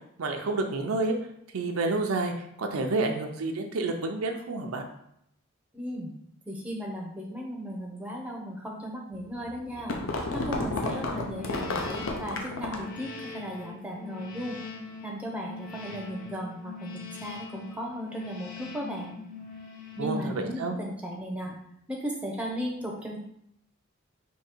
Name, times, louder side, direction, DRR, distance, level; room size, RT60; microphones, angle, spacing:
voice 1, 0.2-1.1 1.5-2.3 2.6-4.9 20.0-20.8, right 3 dB, 85° right, 3 dB, 0.6 m, -29 dB
voice 2, 5.7-6.2 6.5-10.0 10.3-14.6 15.0-19.2 20.0-21.6 21.9-23.2, equal, 5° right, -1 dB, 0.6 m, -36 dB
sound 1, 9.2-13.0, left 2 dB, 70° left, 0.6 m, -32 dB
sound 2, 10.9-20.8, left 4 dB, 40° left, 0.9 m, -43 dB
3.7 x 2.8 x 4.4 m, 0.75 s
head